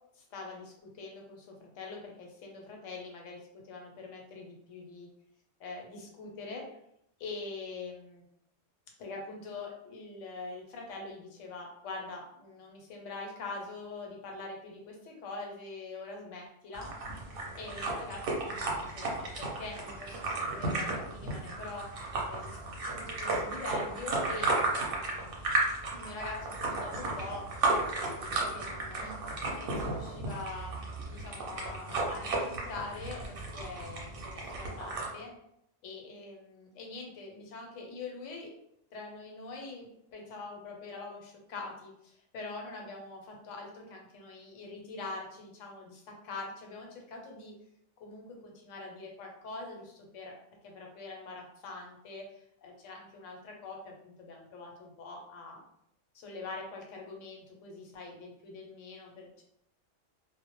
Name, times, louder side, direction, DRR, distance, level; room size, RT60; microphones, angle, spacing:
voice 1, 0.1-5.1 5.6-6.6 7.2-8.2 9.0-16.9 17.6-21.9 22.3-25.3 25.9-35.3 35.8-38.5 38.9-47.5 48.0-50.3 50.6-55.6 56.1-59.4, left 3 dB, 80° left, 1 dB, 0.9 m, -44 dB
sound 1, 16.7-35.1, right 2 dB, 60° right, 0.7 m, -34 dB
2.1 x 2.0 x 2.9 m, 0.77 s
omnidirectional pair, 1.3 m